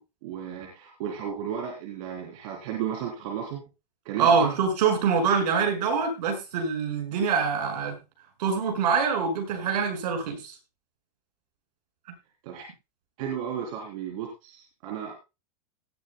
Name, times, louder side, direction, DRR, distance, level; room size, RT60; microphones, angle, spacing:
voice 1, 0.2-3.6 4.1-4.5 12.4-12.7 13.2-15.1, right 8 dB, 55° right, -1 dB, 3.5 m, -34 dB
voice 2, 4.2-8.0 8.4-10.5, right 5 dB, 75° right, 3 dB, 6.0 m, -24 dB
18.5 x 12.0 x 2.3 m, 0.27 s
supercardioid pair, 145°, 21 cm